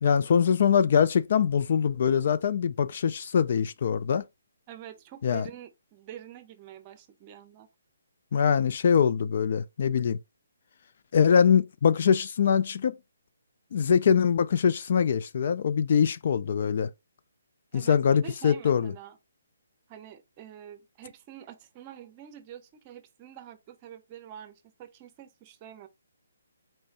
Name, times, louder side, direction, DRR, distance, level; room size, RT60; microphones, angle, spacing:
voice 1, 0.0-4.2 5.2-5.5 8.3-10.2 11.1-13.0 13.7-16.9 17.7-18.9, left 7 dB, 50° left, 0.3 m, -23 dB
voice 2, 4.7-7.7 17.7-19.2 19.9-25.9, right 10 dB, 25° right, 0.7 m, -46 dB
4.3 x 3.1 x 2.8 m
hypercardioid pair, 155°, 0 cm